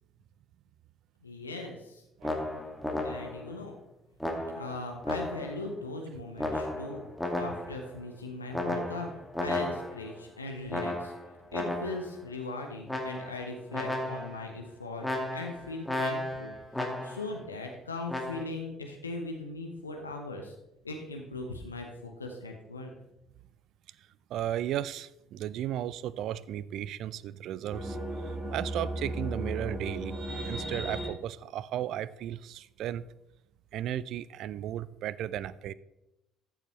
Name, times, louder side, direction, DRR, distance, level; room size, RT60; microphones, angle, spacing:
voice 1, 1.2-2.0 3.0-3.8 4.6-7.0 7.4-9.1 9.4-11.1 11.5-15.1 15.3-16.6 17.0-20.6 20.8-22.9, left 2 dB, 85° left, 2 dB, 0.9 m, -39 dB
sound 1, 2.2-3.5 4.2-5.7 6.4-7.9 8.5-10.1 10.7-12.1 12.9-13.5 13.7-14.4 15.0-17.3 18.1-18.4, left 1 dB, 5° left, 2.0 m, -34 dB
voice 2, 24.3-28.0 28.3-30.2 30.5-33.1 33.7-35.7, right 11 dB, 55° right, 19 dB, 0.4 m, -35 dB
sound 2, 27.7-31.1, right 1 dB, 20° right, 3.3 m, -35 dB
13.5 x 6.9 x 3.2 m, 0.89 s
figure-of-eight pair, 50°, 0 cm